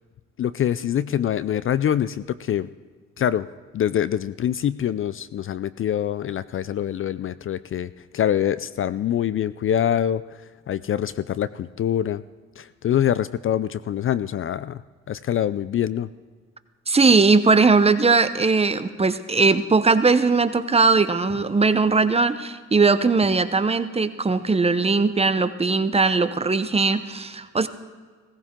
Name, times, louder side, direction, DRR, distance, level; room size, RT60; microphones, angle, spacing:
voice 1, 0.4-2.7 3.2-3.5 3.7-10.4 10.7-12.2 12.6-14.8 15.1-16.1, left 10 dB, 45° left, 16 dB, 0.4 m, -25 dB
voice 2, 16.9-27.7, right 4 dB, 20° right, 11 dB, 0.7 m, -19 dB
17.0 x 15.5 x 3.7 m, 1.5 s
cardioid pair, 90°, 30 cm